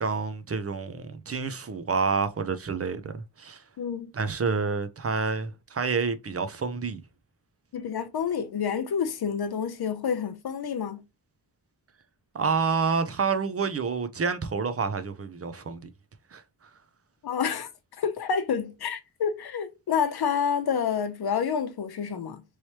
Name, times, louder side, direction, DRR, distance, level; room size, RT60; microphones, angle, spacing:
voice 1, 0.0-3.6 4.1-7.0 12.3-15.9 16.3-16.4, right 5 dB, 35° right, 0.5 m, -28 dB
voice 2, 3.8-4.1 7.7-11.0 17.2-17.7 18.0-22.4, left 7 dB, 65° left, 0.7 m, -28 dB
3.1 x 3.1 x 2.8 m
wide cardioid pair, 160°, 40 cm